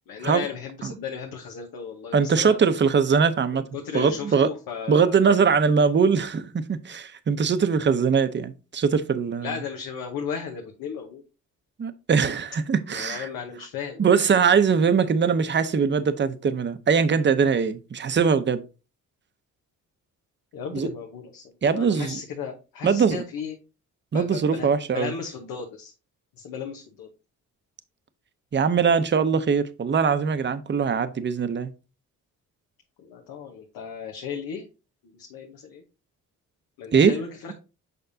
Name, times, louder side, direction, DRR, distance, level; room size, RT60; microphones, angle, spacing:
voice 1, 0.1-2.6 3.5-5.2 9.4-11.2 12.9-14.3 20.5-21.4 21.7-23.5 24.1-25.9 26.4-27.1 33.0-34.6 35.2-35.8 36.8-37.5, left 7 dB, 90° left, 1.1 m, -35 dB
voice 2, 2.1-3.6 3.9-4.5 4.9-9.6 11.8-13.3 14.0-18.6 20.7-20.9 21.6-22.2 22.8-23.2 24.1-25.1 28.5-31.7 36.9-37.2, right 6 dB, 30° right, 0.7 m, -21 dB
6.8 x 5.3 x 2.7 m
cardioid pair, 75°, 34 cm